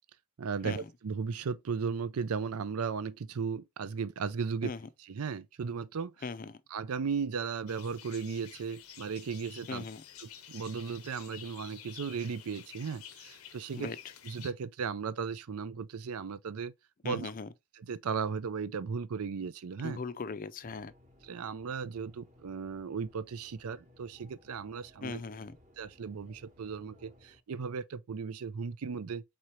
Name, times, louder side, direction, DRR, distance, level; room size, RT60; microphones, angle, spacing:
voice 1, 0.4-4.7 5.0-6.1 6.7-9.8 10.2-13.9 14.2-16.7 17.0-17.3 17.8-20.0 21.2-25.2 25.8-29.2, right 5 dB, 85° right, 0.5 m, -36 dB
voice 2, 6.2-6.6 9.7-10.0 13.7-14.0 17.0-17.5 19.8-20.9 25.0-25.6, left 4 dB, 40° left, 0.4 m, -39 dB
sound 1, 7.7-14.5, left 10 dB, 85° left, 0.7 m, -51 dB
sound 2, 20.6-27.4, left 1 dB, 35° right, 1.1 m, -61 dB
4.3 x 3.8 x 3.1 m
head